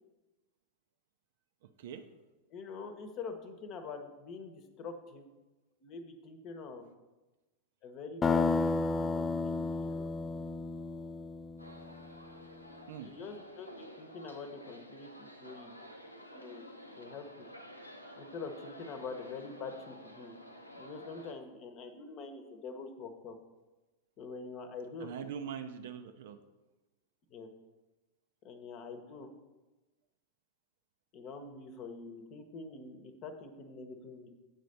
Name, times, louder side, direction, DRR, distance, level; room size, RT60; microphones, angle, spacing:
voice 1, 1.6-2.0 12.9-13.1 25.0-26.4, right 7 dB, 55° right, 8 dB, 0.5 m, -42 dB
voice 2, 2.5-5.2 5.8-6.8 7.8-10.1 13.0-15.7 16.3-16.6 17.0-17.5 18.2-20.3 20.8-23.4 24.2-25.1 27.3-27.5 28.4-29.3 31.1-34.3, left 4 dB, 35° left, 7 dB, 1.0 m, -45 dB
sound 1, 8.2-12.0, left 3 dB, 15° left, 0.3 m, -32 dB
sound 2, 11.6-21.3, equal, 90° left, 0.7 m, -51 dB
8.0 x 4.2 x 6.5 m, 1.1 s
figure-of-eight pair, 90°, 0 cm